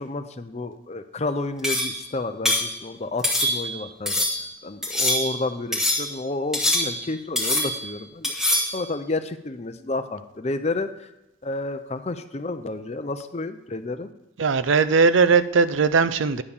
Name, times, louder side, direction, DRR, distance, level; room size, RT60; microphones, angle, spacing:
voice 1, 0.0-11.1 11.4-14.1, left 2 dB, 35° left, 10 dB, 0.6 m, -31 dB
sound 1, 1.6-2.0 2.4-2.7 3.2-3.8 4.1-4.4 4.8-5.4 5.7-6.2 6.5-7.1 7.4-7.9 8.2-8.8, left 1 dB, ahead, 1.4 m, -24 dB
voice 2, 14.4-16.4, right 5 dB, 75° right, 13 dB, 0.5 m, -19 dB
9.9 x 6.8 x 5.4 m, 0.93 s
head